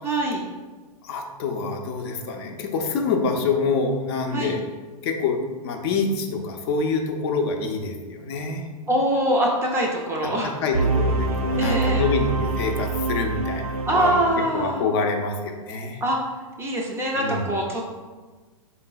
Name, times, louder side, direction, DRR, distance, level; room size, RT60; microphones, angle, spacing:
voice 1, 0.0-0.4 4.3-4.6 8.9-10.5 11.6-12.0 13.8-14.9 16.0-16.2 16.6-17.8, right 1 dB, 15° right, -1 dB, 0.4 m, -23 dB
voice 2, 1.0-4.6 5.0-8.7 10.2-10.3 10.6-14.2 14.5-16.0 17.2-17.5, left 4 dB, 45° left, 3 dB, 0.5 m, -26 dB
sound 1, 10.7-14.7, right 3 dB, 80° right, 0.4 m, -25 dB
4.0 x 3.8 x 2.3 m, 1.3 s
hypercardioid pair, 120°, 19 cm